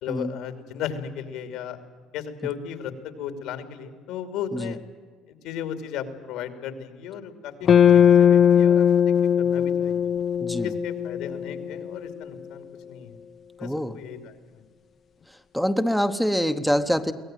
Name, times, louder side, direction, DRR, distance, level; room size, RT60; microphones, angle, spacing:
voice 1, 0.0-1.8 2.1-4.8 5.3-10.0 10.6-13.2 13.6-14.6, left 8 dB, 85° left, 9 dB, 2.8 m, -35 dB
sound 1, 7.6-12.0, left 8 dB, 40° left, 0.8 m, -19 dB
voice 2, 10.4-10.7 13.6-14.0 15.5-17.1, equal, ahead, 6 dB, 1.0 m, -25 dB
23.5 x 17.5 x 9.2 m, 1.5 s
cardioid pair, 125°, 0 cm